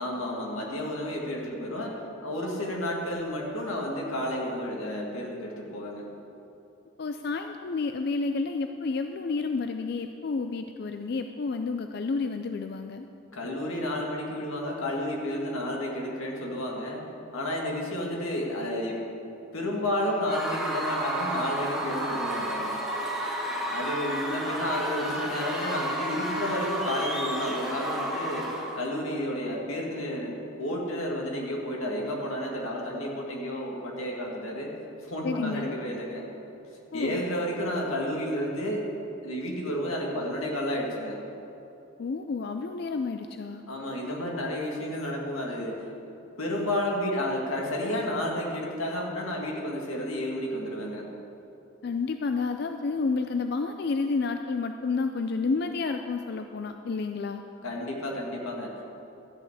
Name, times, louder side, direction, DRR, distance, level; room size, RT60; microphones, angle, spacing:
voice 1, 0.0-6.1 13.3-17.0 17.3-19.0 19.5-22.8 23.7-28.5 28.8-34.7 35.0-36.2 36.9-38.9 39.2-41.2 43.7-45.8 46.4-51.1 57.6-58.8, left 1 dB, 90° left, -1 dB, 2.0 m, -31 dB
voice 2, 7.0-13.1 35.2-35.7 36.9-37.2 42.0-43.6 51.8-57.4, left 4 dB, 50° left, 6 dB, 0.4 m, -30 dB
Screaming / Cheering / Crowd, 20.3-28.8, right 1 dB, ahead, 1.4 m, -31 dB
13.0 x 5.7 x 8.0 m, 2.9 s
head